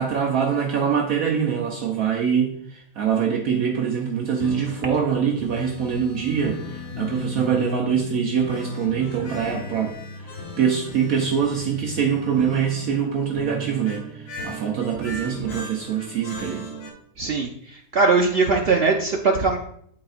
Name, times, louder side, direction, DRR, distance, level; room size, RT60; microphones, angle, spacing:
voice 1, 0.0-16.7, right 7 dB, 65° right, 1 dB, 1.0 m, -24 dB
sound 1, 4.4-16.9, left 2 dB, 60° left, 1.6 m, -36 dB
voice 2, 17.2-19.6, right 4 dB, 85° right, 2 dB, 0.5 m, -20 dB
11.5 x 4.0 x 2.4 m, 0.68 s
omnidirectional pair, 1.8 m